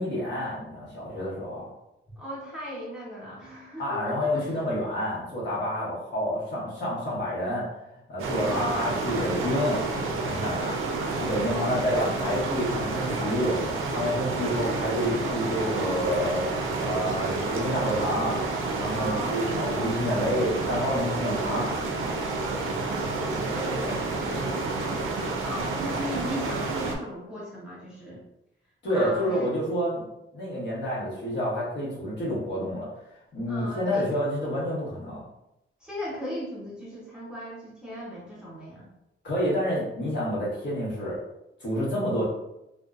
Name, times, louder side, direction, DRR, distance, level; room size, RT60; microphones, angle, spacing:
voice 1, 0.0-1.7 3.8-7.7 8.1-9.8 10.3-10.8 11.2-13.6 13.9-16.5 16.8-18.4 18.7-21.7 28.8-30.0 30.3-32.9 33.3-35.2 39.2-41.2 41.6-42.2, equal, 60° left, -7 dB, 1.1 m, -28 dB
voice 2, 2.2-4.6 8.4-9.0 11.4-12.0 18.9-19.6 22.8-25.1 25.4-28.2 28.9-29.7 33.5-34.1 35.8-38.9, equal, 5° right, -7 dB, 0.5 m, -37 dB
sound 1, 8.2-27.0, right 3 dB, 80° right, 0.5 m, -29 dB
2.6 x 2.2 x 2.3 m, 0.88 s
wide cardioid pair, 165°, 21 cm